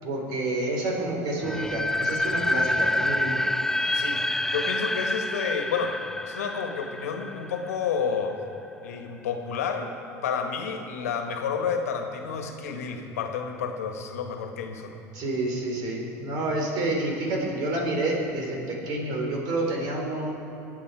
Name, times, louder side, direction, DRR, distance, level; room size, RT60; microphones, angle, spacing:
voice 1, 0.0-3.4 15.1-20.3, right 2 dB, 65° right, 0 dB, 3.8 m, -29 dB
sound 1, 1.4-8.3, left 1 dB, 5° left, 0.3 m, -28 dB
voice 2, 3.9-4.2 4.5-6.0 6.3-8.4 8.8-9.9 10.2-14.9, left 6 dB, 90° left, 5 dB, 1.4 m, -30 dB
24.0 x 8.6 x 4.8 m, 2.9 s
hypercardioid pair, 85°, 8 cm